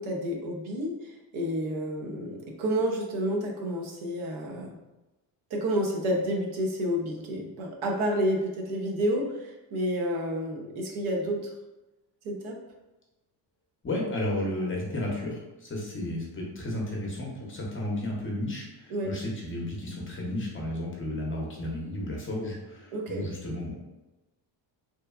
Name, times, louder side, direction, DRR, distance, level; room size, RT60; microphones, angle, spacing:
voice 1, 0.0-4.7 5.5-11.4 12.2-12.6 18.9-19.1 22.9-23.3, equal, 85° right, 0 dB, 0.7 m, -30 dB
voice 2, 13.8-23.8, left 1 dB, 25° left, -2 dB, 0.6 m, -33 dB
3.0 x 2.2 x 2.3 m, 1.0 s
cardioid pair, 120°, 47 cm